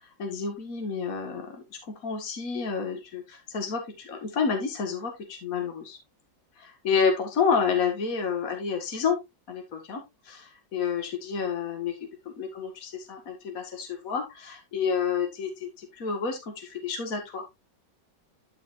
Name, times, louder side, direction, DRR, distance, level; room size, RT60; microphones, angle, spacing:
voice 1, 0.2-6.0 6.6-9.2 9.5-17.4, left 6 dB, 50° left, 4 dB, 2.2 m, -30 dB
12.0 x 5.6 x 2.6 m, 0.21 s
omnidirectional pair, 2.0 m